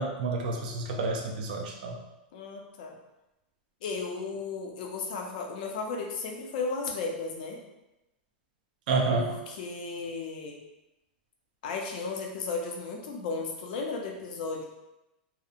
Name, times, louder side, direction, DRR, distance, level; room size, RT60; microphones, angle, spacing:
voice 1, 0.0-2.0 8.9-9.3, right 3 dB, 60° right, 1 dB, 0.4 m, -29 dB
voice 2, 2.3-3.0 3.8-7.6 9.1-10.6 11.6-14.6, left 4 dB, 60° left, 1 dB, 0.6 m, -35 dB
2.7 x 2.1 x 2.4 m, 0.95 s
supercardioid pair, 150°, 5 cm